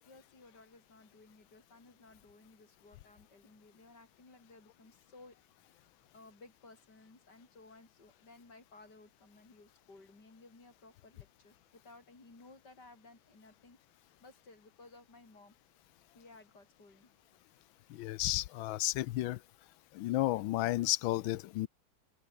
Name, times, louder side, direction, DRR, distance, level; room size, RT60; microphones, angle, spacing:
voice 1, 0.0-5.4 5.6-13.8 14.2-15.6 16.1-17.1, left 3 dB, 55° left, 6.4 m, -58 dB
voice 2, 17.9-19.4 19.9-21.7, left 16 dB, 80° left, 1.4 m, -32 dB
open air
omnidirectional pair, 2.2 m